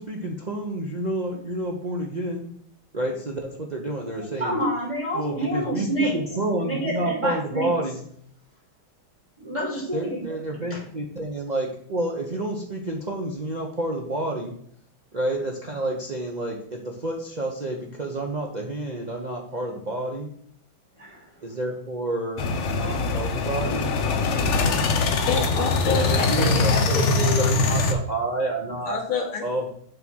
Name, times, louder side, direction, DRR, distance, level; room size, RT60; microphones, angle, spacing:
voice 1, 0.0-2.5 2.9-4.6 5.1-5.9 6.1-8.1 9.9-14.5 15.1-20.3 21.4-22.4 22.7-23.9 25.8-29.0 29.4-29.7, right 1 dB, 85° right, -1 dB, 0.4 m, -29 dB
voice 2, 4.4-6.2 6.6-7.7 9.4-10.4 10.7-10.8 21.0-21.2, right 1 dB, 15° right, -5 dB, 2.1 m, -28 dB
sound 1, 22.4-27.9, left 3 dB, 60° left, 0.7 m, -22 dB
voice 3, 25.3-27.6 28.9-29.5, left 5 dB, 80° left, 0 dB, 2.4 m, -28 dB
6.7 x 3.6 x 6.0 m, 0.64 s
omnidirectional pair, 2.2 m